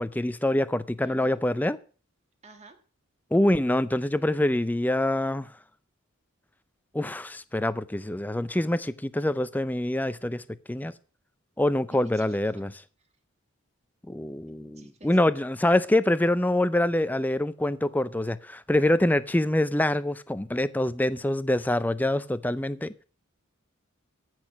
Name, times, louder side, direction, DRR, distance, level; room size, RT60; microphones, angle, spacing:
voice 1, 0.0-1.8 3.3-5.5 6.9-10.4 10.7-10.9 11.6-12.7 14.1-22.9, left 1 dB, 10° left, 0.4 m, -25 dB
voice 2, 1.0-1.4 2.4-2.8 11.9-12.6 14.7-15.3, right 2 dB, 30° right, 1.7 m, -51 dB
14.5 x 6.2 x 6.3 m
head